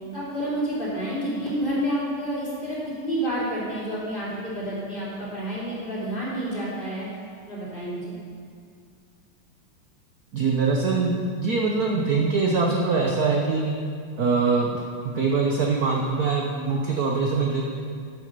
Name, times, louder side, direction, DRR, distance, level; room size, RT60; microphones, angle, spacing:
voice 1, 0.1-7.1 7.5-8.2, right 1 dB, 25° left, -9 dB, 3.3 m, -29 dB
voice 2, 10.3-13.7 14.2-14.8 15.1-17.6, right 4 dB, 60° right, 0 dB, 1.1 m, -23 dB
11.0 x 6.3 x 6.7 m, 2.2 s
omnidirectional pair, 2.3 m